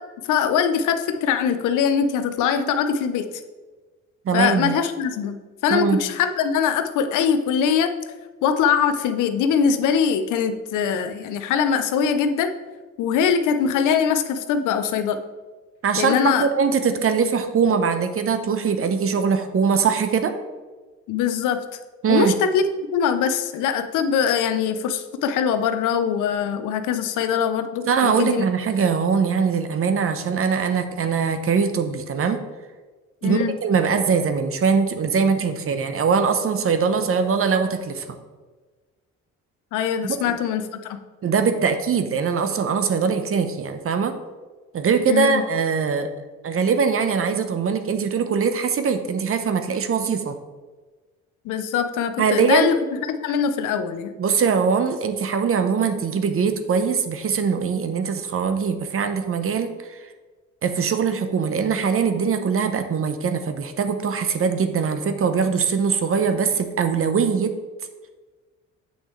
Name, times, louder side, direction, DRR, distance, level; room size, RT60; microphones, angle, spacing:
voice 1, 0.3-3.3 4.3-5.4 5.6-7.9 8.4-12.5 13.0-15.2 16.0-16.5 21.1-21.8 22.1-22.6 22.9-28.5 33.2-33.5 39.7-41.0 45.1-45.4 51.4-54.1, left 7 dB, 90° left, 9 dB, 0.7 m, -22 dB
voice 2, 4.2-4.7 5.7-6.0 15.8-20.3 22.0-22.4 27.9-32.4 33.2-38.0 40.0-40.4 41.2-44.1 44.7-46.1 46.4-50.4 52.2-52.7 54.2-59.7 60.6-67.5, right 6 dB, 45° right, 9 dB, 0.8 m, -22 dB
8.0 x 6.3 x 3.2 m, 1.3 s
cardioid pair, 90°, 30 cm